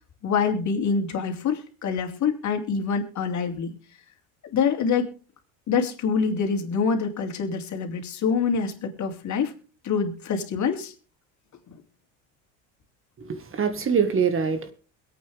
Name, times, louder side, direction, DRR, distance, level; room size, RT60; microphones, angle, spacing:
voice 1, 0.2-3.8 4.5-5.1 5.7-9.5 9.8-10.9, left 5 dB, 45° left, 3.2 m, -25 dB
voice 2, 13.2-14.7, right 6 dB, 30° right, 2.0 m, -24 dB
22.5 x 8.8 x 3.6 m
supercardioid pair, 85°, 40 cm